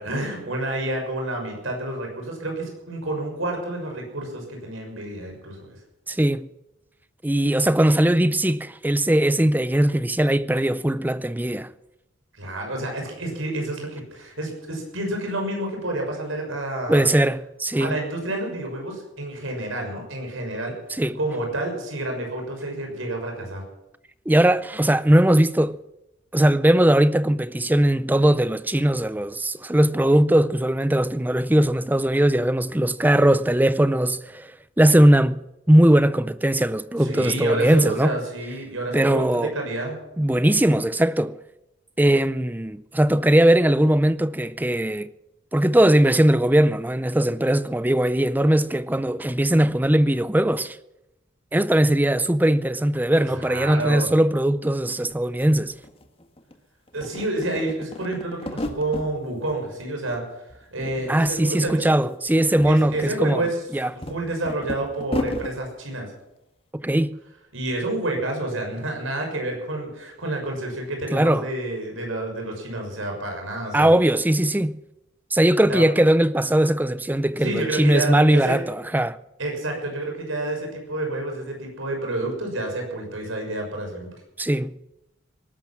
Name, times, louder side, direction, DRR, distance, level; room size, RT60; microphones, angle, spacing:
voice 1, 0.0-5.8 12.4-17.1 17.8-20.7 21.1-23.6 37.0-40.0 53.3-54.1 56.9-60.2 60.6-62.0 62.6-63.6 64.1-66.1 67.5-73.9 75.7-75.8 77.4-78.6 79.4-84.1, right 2 dB, 90° right, 6.4 m, -29 dB
voice 2, 6.1-6.5 7.2-11.7 16.9-18.0 21.0-21.2 24.3-25.8 26.3-34.5 34.8-38.1 38.9-39.5 40.2-41.4 42.0-45.1 45.5-50.8 51.5-55.7 61.1-63.4 63.7-63.9 66.7-67.2 71.1-71.4 73.7-74.8 75.3-79.2 84.4-84.7, right 1 dB, 10° right, 0.5 m, -19 dB
sound 1, 55.1-55.2 55.4-56.5 56.9-59.1 59.5-60.2 60.5-61.4 61.6-61.8 62.3-65.5, left 1 dB, 30° left, 1.6 m, -34 dB
19.5 x 12.5 x 5.9 m
head